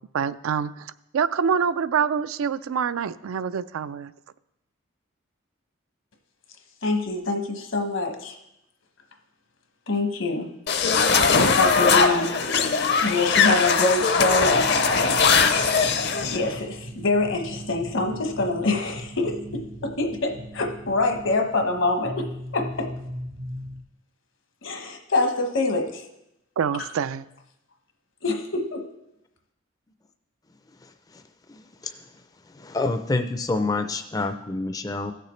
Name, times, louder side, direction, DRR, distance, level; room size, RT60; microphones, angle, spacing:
voice 1, 0.1-4.1 26.6-27.2, right 7 dB, 90° right, 15 dB, 0.4 m, -26 dB
voice 2, 6.8-8.3 9.9-10.5 11.5-12.3 13.0-14.7 16.3-22.3 22.5-22.9 24.6-26.0 28.2-28.8, left 3 dB, 70° left, 4 dB, 1.1 m, -25 dB
sound 1, 10.7-16.4, left 5 dB, 55° left, 0.6 m, -20 dB
sound 2, 14.5-23.8, equal, 70° right, 1.1 m, -38 dB
voice 3, 31.5-31.9 32.6-35.1, left 3 dB, 15° left, 7 dB, 0.4 m, -27 dB
16.0 x 6.6 x 3.2 m, 0.86 s
head